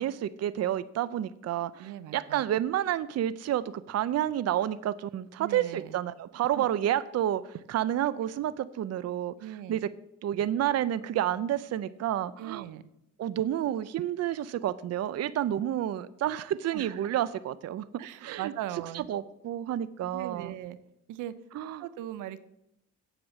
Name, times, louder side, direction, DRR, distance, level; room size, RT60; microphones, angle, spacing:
voice 1, 0.0-9.3 9.7-9.9 10.2-12.7 13.2-17.8 18.2-18.5 18.9-20.6 21.5-21.8, right 11 dB, 55° right, 17 dB, 0.6 m, -30 dB
voice 2, 1.8-2.4 5.4-6.0 6.5-6.7 8.0-8.2 9.4-9.8 12.4-12.9 16.7-17.1 18.0-19.1 20.1-20.8 21.1-21.3 21.8-22.4, right 12 dB, 90° right, 15 dB, 0.7 m, -39 dB
8.1 x 8.0 x 7.2 m, 0.83 s
cardioid pair, 90°, 30 cm